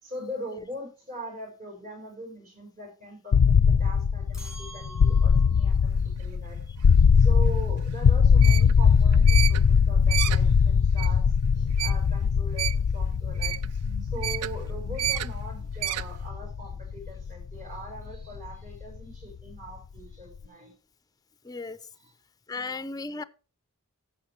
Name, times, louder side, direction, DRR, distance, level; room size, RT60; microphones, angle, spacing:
voice 1, 0.0-6.6 7.2-13.6 14.0-20.8 22.0-22.1 22.5-22.9, right 1 dB, 40° right, 5.0 m, -41 dB
sound 1, 3.3-19.2, left 6 dB, 75° left, 0.4 m, -22 dB
sound 2, 4.3-5.7, right 2 dB, 5° right, 1.8 m, -46 dB
sound 3, 5.7-16.3, right 12 dB, 80° right, 0.3 m, -34 dB
voice 2, 21.4-21.8 22.5-23.2, left 3 dB, 15° left, 0.5 m, -35 dB
15.0 x 6.8 x 3.1 m
head